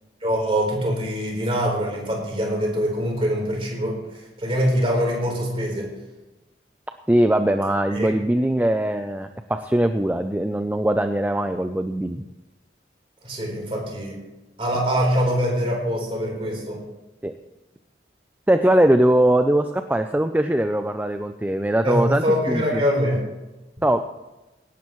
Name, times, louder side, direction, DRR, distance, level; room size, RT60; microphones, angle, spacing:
voice 1, 0.2-4.0 4.4-5.9 8.0-8.1 13.2-14.2 14.6-16.8 21.8-23.2, equal, 30° right, -1 dB, 4.0 m, -23 dB
voice 2, 7.1-12.3 17.2-17.3 18.5-22.8 23.8-24.0, right 1 dB, 10° right, 7 dB, 0.4 m, -21 dB
17.5 x 12.0 x 3.1 m, 1.1 s
head